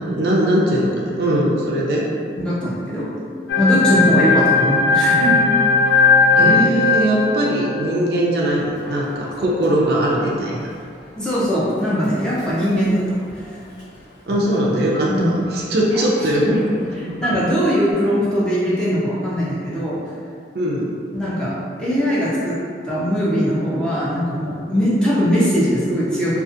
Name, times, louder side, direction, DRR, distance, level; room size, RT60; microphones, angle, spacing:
voice 1, 0.1-2.1 6.4-10.7 14.3-16.5 17.0-17.1 20.5-20.9 24.7-24.9, right 1 dB, 60° right, -3 dB, 0.4 m, -20 dB
voice 2, 2.4-3.1 3.6-5.5 5.9-6.5 11.2-13.3 15.1-15.3 16.4-16.6 16.9-20.0 21.1-22.5 22.8-26.4, equal, 5° left, -9 dB, 0.5 m, -20 dB
sound 1, 3.5-8.0, left 4 dB, 65° left, 0.4 m, -17 dB
Human voice / Subway metro underground, 8.5-17.9, right 1 dB, 20° left, 0.8 m, -39 dB
2.6 x 2.4 x 2.5 m, 2.3 s
head